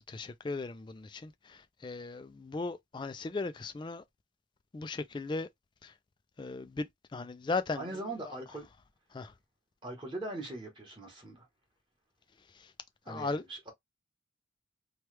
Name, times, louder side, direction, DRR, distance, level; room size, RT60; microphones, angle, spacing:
voice 1, 0.0-4.0 4.7-5.5 5.8-5.9 6.4-7.9 9.1-9.3 12.5-12.7 13.1-13.4, left 3 dB, 25° left, 0.3 m, -37 dB
voice 2, 7.7-8.7 9.8-11.5 13.0-13.7, right 2 dB, 25° right, 1.1 m, -41 dB
3.0 x 2.3 x 3.2 m
head